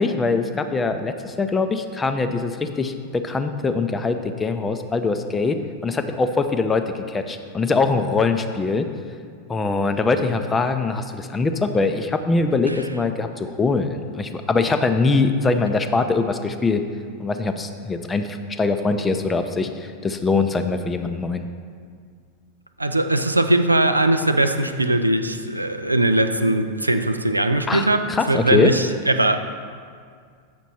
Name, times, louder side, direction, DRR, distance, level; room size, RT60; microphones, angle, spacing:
voice 1, 0.0-5.6 5.8-8.9 9.5-16.8 17.2-21.5 27.7-28.7, left 3 dB, 15° left, 8 dB, 0.5 m, -22 dB
voice 2, 22.8-29.4, right 1 dB, 85° right, 8 dB, 0.4 m, -20 dB
8.2 x 6.1 x 4.2 m, 2.1 s
figure-of-eight pair, 90°, 0 cm